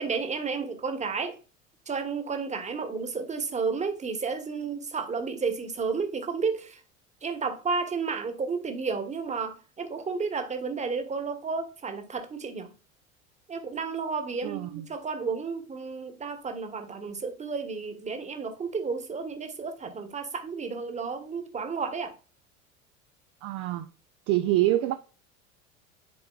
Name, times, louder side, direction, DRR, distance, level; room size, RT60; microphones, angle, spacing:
voice 1, 0.0-1.4 1.9-6.8 7.2-12.7 13.5-22.2, right 5 dB, 15° right, 1.3 m, -32 dB
voice 2, 14.4-14.9 23.4-23.9 24.3-25.0, right 15 dB, 40° right, 0.6 m, -26 dB
10.5 x 4.4 x 2.4 m
figure-of-eight pair, 75°, 39 cm